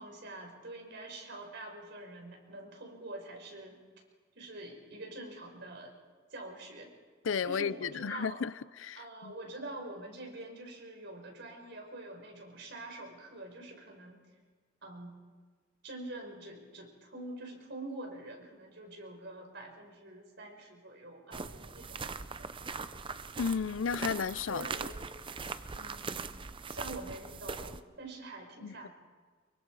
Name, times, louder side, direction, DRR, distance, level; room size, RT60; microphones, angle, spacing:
voice 1, 0.0-3.8 4.4-5.9 6.3-6.9 7.4-8.4 9.0-14.2 14.8-15.2 15.8-22.7 24.5-25.0 25.7-26.2 26.7-28.9, right 2 dB, 60° right, 5.2 m, -45 dB
voice 2, 7.2-9.3 23.4-24.7 25.5-25.6 28.6-28.9, left 6 dB, 80° left, 0.5 m, -33 dB
sound 1, 21.3-27.8, right 4 dB, 25° right, 0.6 m, -41 dB
25.5 x 23.0 x 4.8 m
head